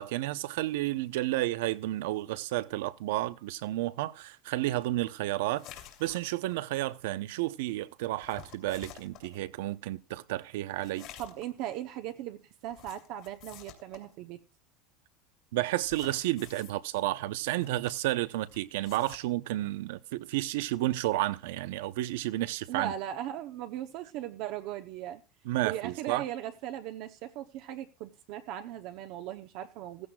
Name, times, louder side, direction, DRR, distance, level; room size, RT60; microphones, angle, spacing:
voice 1, 0.0-5.7 6.0-11.1 15.5-22.9 25.4-26.2, right 16 dB, 80° right, 0.8 m, -31 dB
sound 1, 5.5-6.6 8.2-9.4 10.8-11.6 12.7-14.1 15.7-16.7 17.5-18.2 18.5-19.2, left 11 dB, 50° left, 2.6 m, -50 dB
voice 2, 11.2-14.4 22.7-25.2 25.6-30.1, right 11 dB, 50° right, 0.8 m, -38 dB
16.0 x 15.0 x 2.3 m
cardioid pair, 165°, 0 cm